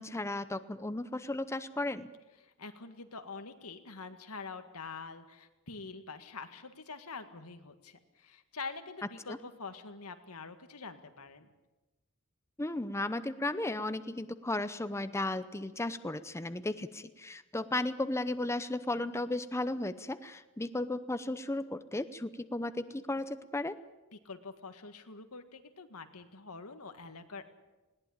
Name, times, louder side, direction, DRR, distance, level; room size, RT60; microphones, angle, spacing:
voice 1, 0.0-2.1 9.3-9.4 12.6-23.8, left 2 dB, 10° left, 12 dB, 0.7 m, -35 dB
voice 2, 2.4-11.5 24.3-27.5, left 4 dB, 85° left, 8 dB, 1.8 m, -45 dB
20.5 x 18.0 x 8.7 m, 1.1 s
head